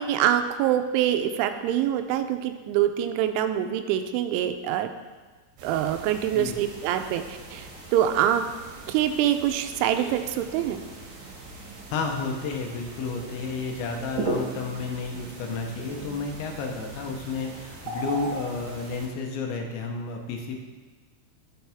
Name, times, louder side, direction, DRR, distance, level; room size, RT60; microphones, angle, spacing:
voice 1, 0.0-4.9 5.6-8.4 8.9-10.8, right 11 dB, 90° right, 8 dB, 3.0 m, -25 dB
sound 1, 5.6-19.1, right 2 dB, 65° right, 3.7 m, -38 dB
voice 2, 11.9-20.6, left 4 dB, 80° left, 2 dB, 3.2 m, -31 dB
12.0 x 7.3 x 3.5 m, 1.3 s
omnidirectional pair, 5.4 m